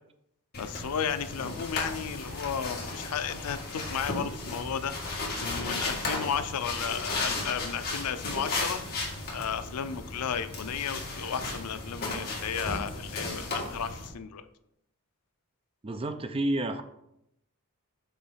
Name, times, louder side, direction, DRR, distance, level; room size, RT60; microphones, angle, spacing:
sound 1, 0.5-14.1, left 2 dB, 45° left, 1.7 m, -35 dB
voice 1, 0.6-14.5, left 7 dB, 85° left, 11 dB, 0.5 m, -34 dB
voice 2, 15.8-16.8, right 1 dB, 25° right, 8 dB, 0.5 m, -30 dB
6.7 x 3.0 x 5.6 m, 0.80 s
head